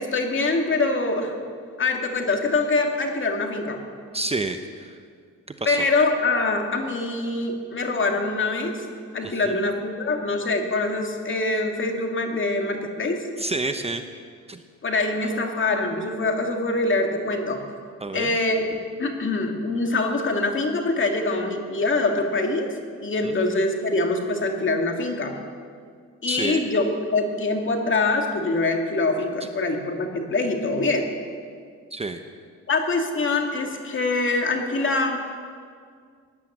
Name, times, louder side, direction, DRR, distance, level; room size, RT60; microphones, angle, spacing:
voice 1, 0.0-1.3 1.8-3.8 5.7-8.8 9.1-13.2 14.8-17.6 18.1-18.7 19.0-22.7 23.0-25.3 26.2-31.1 32.7-35.2, left 3 dB, 40° left, 3 dB, 2.4 m, -24 dB
voice 2, 4.1-5.0 5.6-5.8 9.2-9.6 13.4-14.0 14.5-14.6 18.0-18.3 23.2-23.4 26.3-26.6 31.9-32.2, right 2 dB, 20° right, 7 dB, 0.8 m, -29 dB
17.5 x 10.0 x 7.4 m, 2.1 s
cardioid pair, 90°, 30 cm